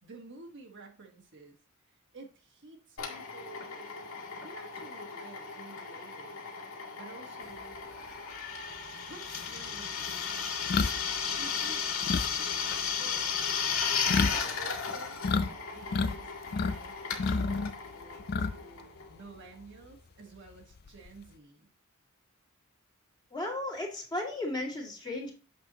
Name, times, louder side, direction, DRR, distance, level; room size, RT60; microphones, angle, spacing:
voice 1, 0.0-1.6 2.1-4.1 4.4-6.4 6.9-7.8 9.1-10.5 11.4-11.9 12.4-13.4 14.3-21.7, right 3 dB, 60° right, 2 dB, 1.4 m, -51 dB
Drill, 3.0-19.3, left 6 dB, 80° left, 2.0 m, -35 dB
sound 1, 8.8-8.9 9.3-15.5 15.8-16.8 17.1-18.8 19.1-19.3 20.7-21.3, left 4 dB, 50° left, 0.5 m, -31 dB
voice 2, 23.3-25.3, left 1 dB, 20° left, -2 dB, 2.1 m, -35 dB
7.6 x 6.0 x 2.9 m, 0.36 s
head